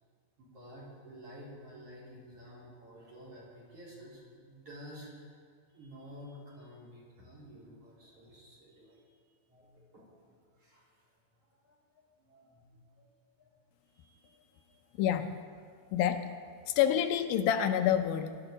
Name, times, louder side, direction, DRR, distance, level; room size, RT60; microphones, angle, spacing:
voice 1, 0.4-5.3 5.7-9.2 9.5-10.9 11.4-13.1 13.4-13.5 13.9-14.9 16.6-16.8, equal, 40° right, -7 dB, 4.6 m, -52 dB
voice 2, 15.0-15.4 15.9-16.3 16.7-18.4, left 10 dB, 85° left, 8 dB, 2.4 m, -28 dB
19.5 x 13.0 x 3.9 m, 2.1 s
omnidirectional pair, 4.2 m